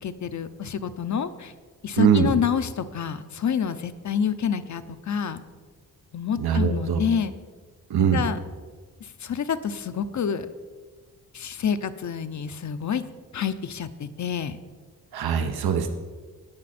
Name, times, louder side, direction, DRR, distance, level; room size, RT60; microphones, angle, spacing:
voice 1, 0.0-1.5 1.8-5.4 6.1-7.3 8.1-8.4 9.0-10.5 11.3-13.1 13.3-14.6, left 7 dB, 50° left, 11 dB, 0.7 m, -28 dB
voice 2, 2.0-2.3 6.4-7.0 7.9-8.2 15.1-15.9, right 7 dB, 85° right, 6 dB, 0.9 m, -22 dB
18.5 x 6.4 x 4.3 m, 1.4 s
wide cardioid pair, 100°, 36 cm